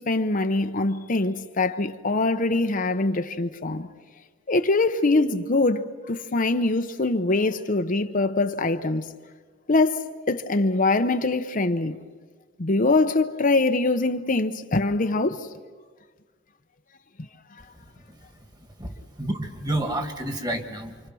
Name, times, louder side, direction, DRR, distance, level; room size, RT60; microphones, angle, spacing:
voice 1, 0.0-3.9 4.5-9.1 9.7-12.0 12.6-15.5, left 2 dB, 45° left, 0.9 m, -23 dB
voice 2, 18.8-21.0, right 1 dB, 20° right, 2.2 m, -30 dB
28.5 x 25.5 x 6.3 m
head